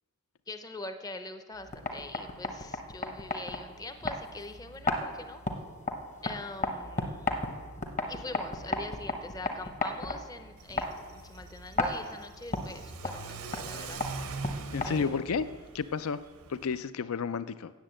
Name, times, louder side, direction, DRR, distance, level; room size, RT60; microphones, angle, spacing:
voice 1, 0.5-5.4 6.2-7.4 8.1-14.2 14.8-15.6, left 2 dB, 15° left, 8 dB, 0.6 m, -43 dB
sound 1, 1.6-15.3, left 2 dB, 35° left, 1.0 m, -36 dB
Car / Accelerating revving vroom, 10.6-16.8, right 4 dB, 85° right, 0.9 m, -43 dB
voice 2, 14.7-15.5 15.7-16.2 16.5-17.7, left 5 dB, 75° left, 14 dB, 0.4 m, -31 dB
9.0 x 7.3 x 7.6 m, 1.5 s
head